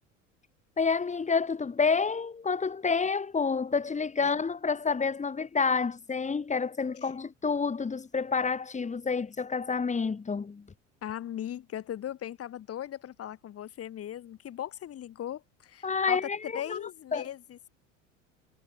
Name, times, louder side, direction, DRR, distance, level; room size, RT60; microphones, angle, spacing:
voice 1, 0.8-10.7 15.8-16.8 17.1-17.2, left 5 dB, 20° left, 3.8 m, -29 dB
voice 2, 11.0-16.2 16.5-17.7, left 11 dB, 40° left, 6.1 m, -38 dB
figure-of-eight pair, 75°, 38 cm